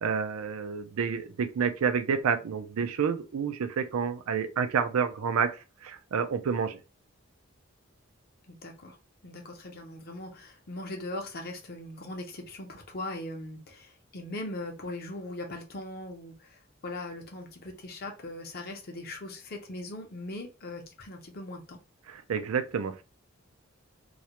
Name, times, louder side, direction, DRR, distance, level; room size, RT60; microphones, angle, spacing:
voice 1, 0.0-6.8 22.1-23.0, right 6 dB, 90° right, 0.4 m, -29 dB
voice 2, 8.5-9.0 9.2-21.8, left 2 dB, 45° left, 0.6 m, -40 dB
2.3 x 2.1 x 2.8 m
head